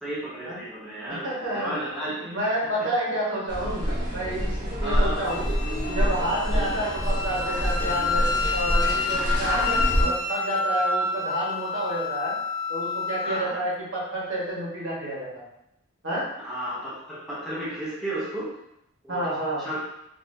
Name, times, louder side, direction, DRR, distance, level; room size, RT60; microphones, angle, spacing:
voice 1, 0.0-2.4 4.8-5.2 6.5-6.8 13.2-13.6 16.4-18.5 19.0-19.3 19.6-19.8, right 1 dB, ahead, -9 dB, 0.8 m, -33 dB
voice 2, 1.1-1.7 2.2-5.5 5.9-9.6 10.0-12.3 12.7-15.4 16.0-16.3 19.1-19.6, right 1 dB, 65° right, -6 dB, 1.4 m, -29 dB
sound 1, 3.5-10.0, equal, 35° right, 1.0 m, -26 dB
Wind instrument woodwind instrument, 5.3-13.5, left 4 dB, 70° left, 0.4 m, -29 dB
4.0 x 2.8 x 2.6 m, 0.80 s
head